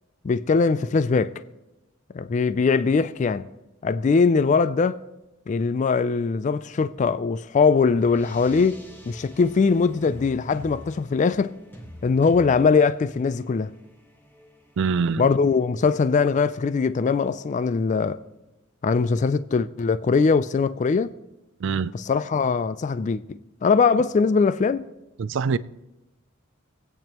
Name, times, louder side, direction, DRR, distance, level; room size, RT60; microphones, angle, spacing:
voice 1, 0.2-1.3 2.1-3.5 3.8-5.0 5.5-11.6 12.0-13.7 15.2-18.2 18.8-21.1 21.9-23.2 23.6-24.9, left 5 dB, 35° left, 0.3 m, -21 dB
sound 1, 7.8-17.7, equal, 10° left, 1.3 m, -47 dB
voice 2, 14.8-15.3 21.6-21.9 25.2-25.6, right 5 dB, 65° right, 0.4 m, -24 dB
25.5 x 8.9 x 3.0 m
head